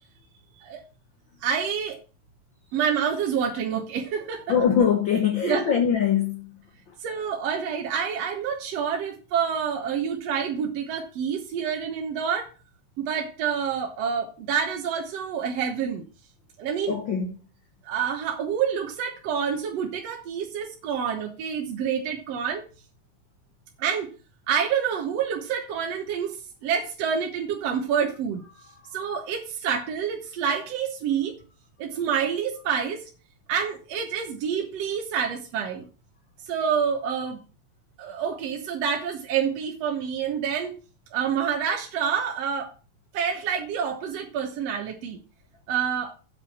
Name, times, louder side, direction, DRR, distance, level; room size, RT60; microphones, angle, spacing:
voice 1, 1.4-2.0 2.7-4.4 5.4-5.7 7.0-12.5 13.0-16.0 16.6-17.0 17.9-22.6 23.8-24.1 24.5-28.4 28.9-31.4 31.8-33.0 33.5-35.9 36.5-37.4 38.0-40.8 41.1-42.7 43.1-45.2 45.7-46.1, right 7 dB, 60° right, 2.1 m, -27 dB
voice 2, 4.5-6.5 16.9-17.3, left 8 dB, 55° left, 1.4 m, -22 dB
8.3 x 6.0 x 7.2 m
omnidirectional pair, 3.5 m